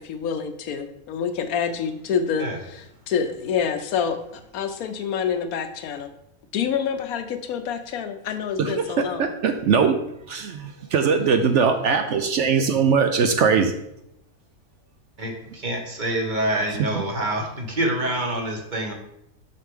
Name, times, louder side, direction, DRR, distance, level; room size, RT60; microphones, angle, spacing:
voice 1, 0.0-6.1 6.5-9.3, left 7 dB, 75° left, 9 dB, 1.1 m, -27 dB
voice 2, 9.2-10.0 10.3-13.7 16.8-16.9, right 6 dB, 65° right, 7 dB, 0.8 m, -21 dB
voice 3, 15.2-18.9, right 1 dB, 35° right, 2 dB, 1.1 m, -26 dB
6.6 x 5.9 x 3.6 m, 0.80 s
omnidirectional pair, 1.6 m